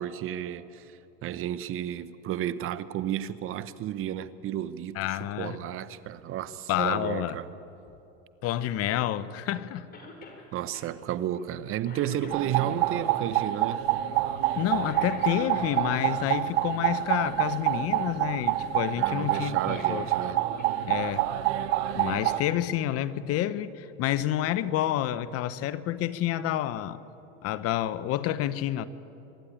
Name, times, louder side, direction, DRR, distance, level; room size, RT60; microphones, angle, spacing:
voice 1, 0.0-7.5 10.5-13.9 18.9-20.4, right 11 dB, 40° right, 0.9 m, -33 dB
voice 2, 4.9-5.6 6.7-7.4 8.4-9.9 14.6-20.0 20.9-21.3 22.0-27.0 27.4-28.9, left 12 dB, 45° left, 0.9 m, -29 dB
Cough, 9.9-10.4 10.7-10.9 11.4-11.5 11.8-12.8 14.8-16.2 19.4-20.7 21.1-21.2 22.3-22.4, left 2 dB, 30° left, 4.0 m, -46 dB
sound 1, 12.3-22.4, right 14 dB, 75° right, 0.9 m, -27 dB
24.5 x 11.5 x 9.9 m
supercardioid pair, 115°, 32 cm